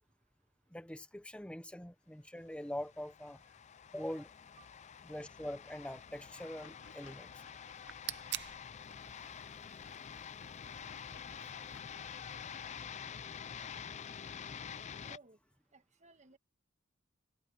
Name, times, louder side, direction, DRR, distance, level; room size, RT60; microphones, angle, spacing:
voice 1, 0.7-3.4 3.9-4.3 5.0-7.3 11.4-11.5, left 1 dB, 5° left, 1.0 m, -43 dB
sound 1, 2.6-15.2, left 7 dB, 35° left, 0.4 m, -48 dB
sound 2, 6.4-12.9, left 4 dB, 70° left, 3.1 m, -61 dB
sound 3, 7.6-12.8, right 13 dB, 55° right, 0.7 m, -49 dB
voice 2, 15.0-15.4 15.7-16.4, right 4 dB, 35° right, 1.5 m, -59 dB
head